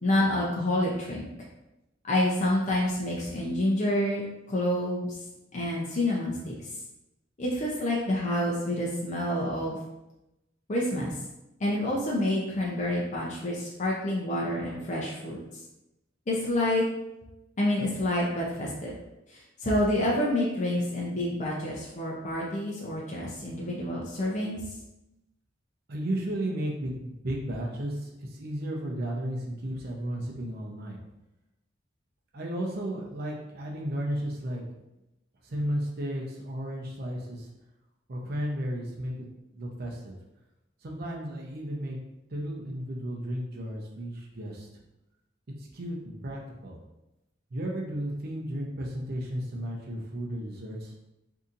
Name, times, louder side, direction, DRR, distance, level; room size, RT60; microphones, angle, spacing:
voice 1, 0.0-1.3 2.0-5.1 5.5-6.5 7.4-9.8 10.7-11.1 11.6-15.4 16.3-16.8 17.6-18.9 19.3-24.6, left 1 dB, 40° left, -4 dB, 0.5 m, -28 dB
voice 2, 25.9-31.0 32.3-34.6 35.4-37.5 38.1-39.3 39.5-40.1 40.8-42.0 42.3-44.8 45.6-46.8 47.5-50.9, right 1 dB, 55° right, -1 dB, 0.6 m, -34 dB
3.9 x 2.7 x 2.5 m, 0.92 s
head